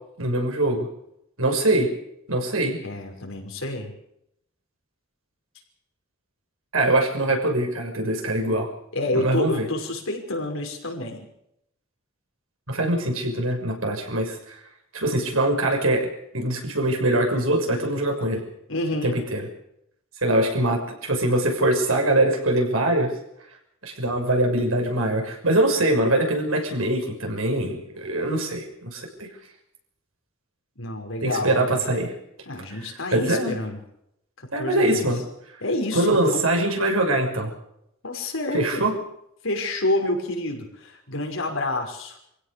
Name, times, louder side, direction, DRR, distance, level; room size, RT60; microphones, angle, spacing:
voice 1, 0.2-0.9 1.4-1.9 2.3-2.8 6.7-8.7 9.1-9.7 12.7-14.6 14.9-18.4 19.0-19.4 20.2-23.1 23.8-29.3 31.2-32.1 32.7-32.8 33.1-33.6 34.5-35.2 35.9-37.5 38.5-38.9, right 1 dB, 90° right, 3 dB, 6.3 m, -23 dB
voice 2, 2.8-3.9 8.9-11.3 18.7-19.2 30.8-31.9 32.5-33.8 34.4-35.1 35.6-36.4 38.0-38.9 39.4-42.2, left 2 dB, 70° left, 2 dB, 5.8 m, -28 dB
25.5 x 16.5 x 6.9 m, 0.77 s
head